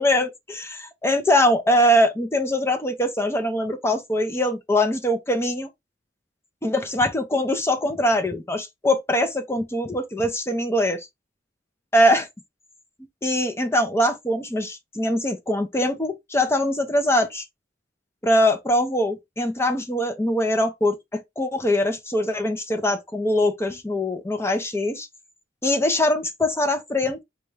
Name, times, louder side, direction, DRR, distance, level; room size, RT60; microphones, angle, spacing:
voice 1, 0.0-5.7 6.6-11.1 11.9-12.3 13.2-17.4 18.2-25.1 25.6-27.2, left 1 dB, 15° left, 0.5 m, -22 dB
4.1 x 2.3 x 3.2 m
head